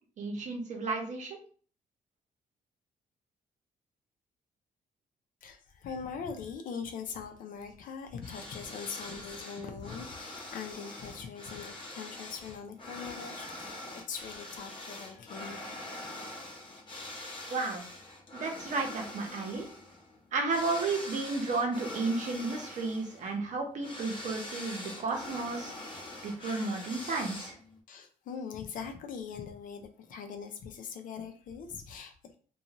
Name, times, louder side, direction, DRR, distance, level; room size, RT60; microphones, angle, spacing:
voice 1, 0.2-1.4 17.5-17.8 18.3-19.7 20.3-25.7 26.2-27.5, right 3 dB, 60° right, 1 dB, 0.8 m, -33 dB
voice 2, 5.4-15.6 27.9-32.4, left 6 dB, 75° left, 5 dB, 0.5 m, -42 dB
sound 1, 8.2-27.8, left 1 dB, 35° left, 0.8 m, -44 dB
2.6 x 2.3 x 2.9 m, 0.43 s
cardioid pair, 140°, 14 cm